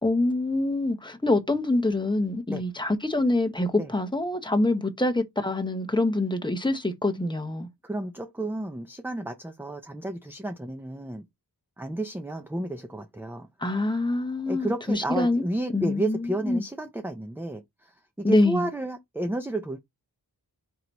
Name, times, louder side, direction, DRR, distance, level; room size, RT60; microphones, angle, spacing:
voice 1, 0.0-7.7 13.6-15.4 15.7-16.6 18.2-18.7, left 2 dB, 10° left, 0.9 m, -25 dB
voice 2, 7.8-11.2 11.8-13.5 14.5-19.8, right 1 dB, 5° right, 0.5 m, -32 dB
4.6 x 2.9 x 3.9 m
wide cardioid pair, 75°, 40 cm